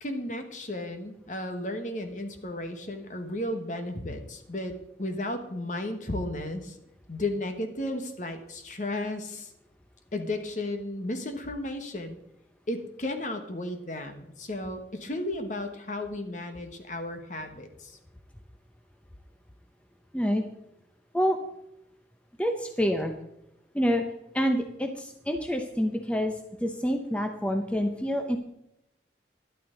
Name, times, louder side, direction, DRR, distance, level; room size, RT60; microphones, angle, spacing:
voice 1, 0.0-4.7 5.0-6.8 7.1-9.5 10.1-12.2 12.7-18.0, left 1 dB, 45° left, 6 dB, 1.3 m, -34 dB
voice 2, 22.4-23.1 23.7-24.0 24.3-28.4, equal, 5° left, 5 dB, 0.7 m, -27 dB
12.5 x 11.5 x 3.9 m, 0.84 s
head